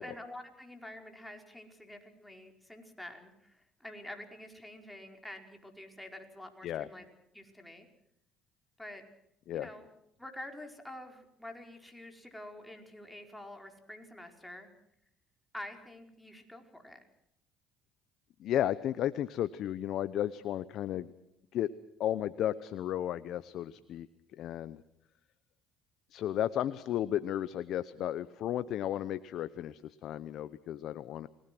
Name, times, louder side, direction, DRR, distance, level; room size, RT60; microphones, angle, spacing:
voice 1, 0.0-7.0 7.3-7.9 8.8-9.0 9.5-9.9 10.2-14.7 15.5-17.0, left 1 dB, 5° left, 3 dB, 4.9 m, -47 dB
voice 2, 18.4-21.1 21.5-21.7 22.0-24.1 24.3-24.8 26.1-31.3, left 11 dB, 65° left, 14 dB, 0.9 m, -34 dB
29.5 x 19.5 x 6.2 m, 0.79 s
supercardioid pair, 85°, 0 cm